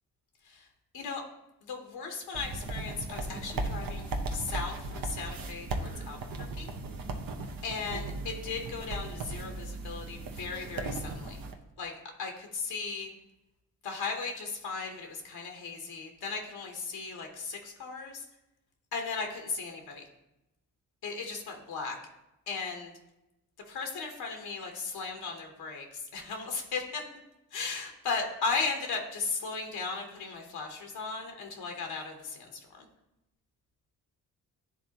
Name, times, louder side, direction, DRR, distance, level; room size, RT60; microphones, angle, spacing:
voice 1, 1.6-6.2 6.6-6.7 7.6-11.4 11.8-11.9 12.2-13.1 13.8-18.2 18.9-20.0 21.0-22.0 22.5-22.9 23.7-25.9 26.1-27.0 27.5-32.9, left 4 dB, 80° left, 3 dB, 1.1 m, -36 dB
sound 1, 2.3-11.5, right 2 dB, 65° right, 0.9 m, -37 dB
10.0 x 3.6 x 2.9 m, 0.92 s
supercardioid pair, 50°, 38 cm